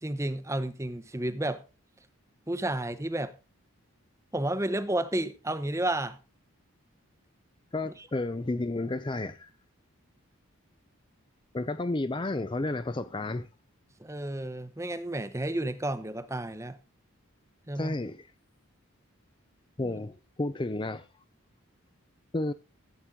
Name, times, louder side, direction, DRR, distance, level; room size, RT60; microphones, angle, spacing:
voice 1, 0.0-1.6 2.5-3.3 4.3-6.2 7.8-7.9 14.0-16.8 17.7-17.9 19.8-20.0, right 1 dB, 15° right, 0.8 m, -31 dB
voice 2, 7.7-9.5 11.5-13.5 17.8-18.3 19.8-21.1 22.3-22.5, left 2 dB, 20° left, 0.5 m, -31 dB
15.5 x 8.6 x 3.7 m
head